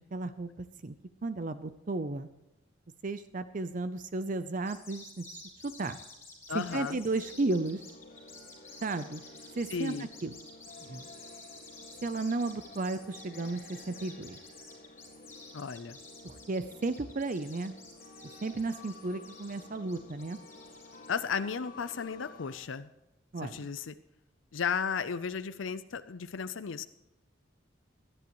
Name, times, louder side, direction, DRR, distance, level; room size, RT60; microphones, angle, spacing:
voice 1, 0.1-0.9 1.2-2.3 3.0-5.3 5.6-6.0 6.5-7.8 8.8-9.2 9.6-9.9 10.2-10.3 10.9-11.0 12.0-14.4 16.2-17.7 18.4-20.4 23.3-23.7, right 3 dB, 45° right, 11 dB, 0.6 m, -34 dB
sound 1, 4.7-21.1, left 3 dB, 15° left, 5.0 m, -51 dB
voice 2, 6.5-7.0 9.7-10.1 15.5-16.0 21.1-22.9 23.4-23.9 24.5-26.8, left 6 dB, 90° left, 11 dB, 0.6 m, -34 dB
sound 2, 6.7-22.6, left 2 dB, 50° left, 1.9 m, -52 dB
20.5 x 11.0 x 3.1 m, 0.97 s
head